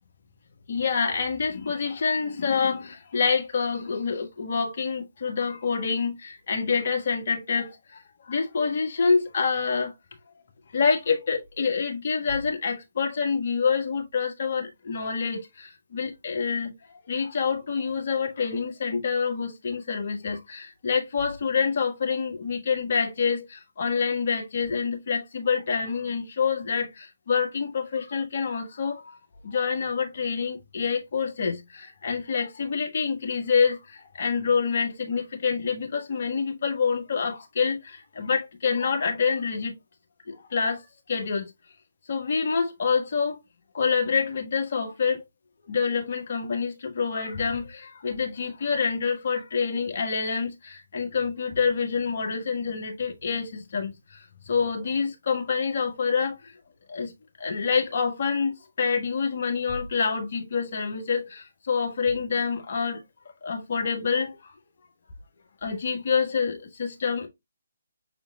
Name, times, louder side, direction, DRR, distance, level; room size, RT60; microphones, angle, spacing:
voice 1, 0.7-7.7 8.3-9.9 10.7-16.7 17.1-29.0 29.4-33.8 34.2-39.7 40.5-40.8 41.1-41.5 42.1-43.4 43.7-45.2 45.7-53.9 54.5-56.4 56.9-57.1 57.4-63.0 63.4-64.3 65.6-67.3, left 5 dB, 50° left, 1.4 m, -27 dB
6.1 x 3.6 x 2.3 m
figure-of-eight pair, 140°, 0 cm